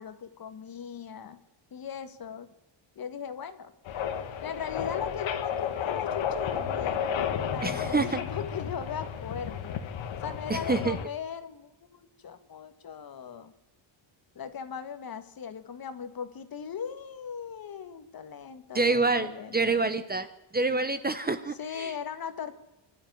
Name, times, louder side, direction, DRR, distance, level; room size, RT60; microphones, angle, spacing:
voice 1, 0.0-1.4 1.7-2.5 3.0-3.7 4.4-7.1 7.5-9.8 10.2-13.5 14.4-19.8 21.6-22.6, left 7 dB, 45° left, 10 dB, 1.8 m, -39 dB
sound 1, 3.9-11.0, left 8 dB, 70° left, 2.0 m, -32 dB
voice 2, 7.6-8.2 10.5-11.0 18.7-20.3 20.5-21.9, right 3 dB, 20° right, 11 dB, 1.0 m, -27 dB
25.5 x 12.5 x 9.4 m, 1.1 s
cardioid pair, 125°, 48 cm